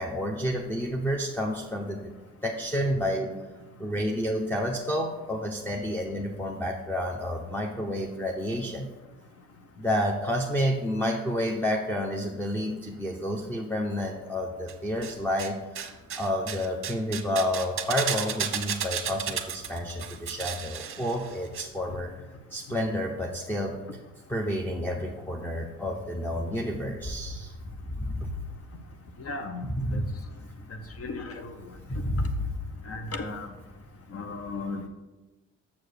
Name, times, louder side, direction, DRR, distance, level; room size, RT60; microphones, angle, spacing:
voice 1, 0.0-2.1 2.4-3.3 3.8-8.9 9.8-22.1 22.5-23.8 24.3-27.5 27.9-28.3 29.6-30.1 31.9-32.5, equal, 5° left, 1 dB, 0.8 m, -30 dB
sound 1, 14.7-15.5 15.7-21.6 21.9-22.0, right 8 dB, 45° right, 0.8 m, -33 dB
voice 2, 29.2-29.6 29.9-30.0 31.0-31.5 32.9-33.5 34.1-34.9, left 3 dB, 50° left, 7 dB, 0.9 m, -35 dB
7.0 x 4.8 x 6.5 m, 1.1 s
cardioid pair, 90°, 30 cm